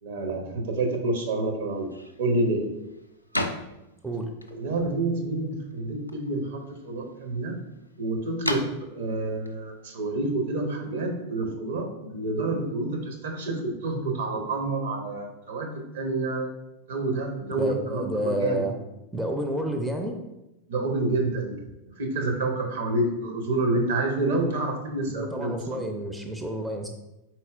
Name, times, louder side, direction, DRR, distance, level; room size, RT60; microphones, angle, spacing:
voice 1, 0.0-1.9 2.2-2.6 4.5-7.6 8.0-16.5 16.9-18.6 20.7-21.6 22.0-25.8, right 2 dB, 60° right, 3 dB, 0.8 m, -28 dB
sound 1, 1.7-10.8, left 1 dB, 90° left, 0.3 m, -39 dB
voice 2, 17.6-18.7 19.1-20.2 25.1-26.9, right 1 dB, 5° right, 3 dB, 0.4 m, -30 dB
4.3 x 4.1 x 2.4 m, 0.94 s
figure-of-eight pair, 90°, 0 cm